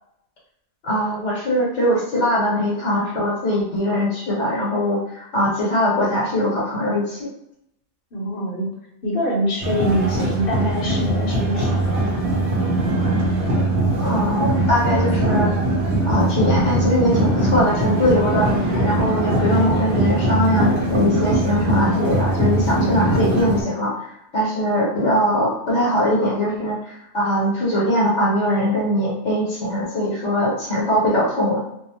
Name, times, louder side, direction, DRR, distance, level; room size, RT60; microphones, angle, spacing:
voice 1, 0.8-7.3 14.0-15.5 16.0-31.6, equal, 75° left, -5 dB, 1.1 m, -21 dB
voice 2, 8.1-8.7 9.0-12.2, equal, 55° left, -2 dB, 0.9 m, -24 dB
sound 1, 9.6-23.6, right 1 dB, 70° right, 1.1 m, -21 dB
2.6 x 2.0 x 2.8 m, 0.81 s
omnidirectional pair, 1.2 m